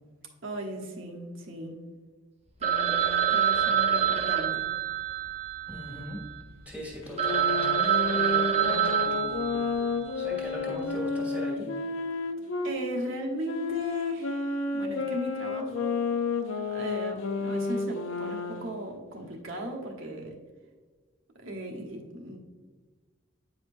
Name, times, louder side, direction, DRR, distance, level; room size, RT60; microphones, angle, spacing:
voice 1, 0.4-1.8 2.6-4.7 12.6-16.0 16.7-20.4 21.3-22.4, equal, 75° right, 1 dB, 1.2 m, -37 dB
Telephone, 2.6-6.4 6.9-7.0 7.2-10.1, right 8 dB, 30° right, 0.7 m, -26 dB
voice 2, 5.7-6.2 6.6-9.7 10.0-11.7, left 1 dB, 5° right, -3 dB, 1.6 m, -40 dB
sound 1, 7.0-12.7 13.4-18.8, left 4 dB, 75° left, 0.6 m, -31 dB
9.0 x 5.1 x 2.6 m, 1.4 s
head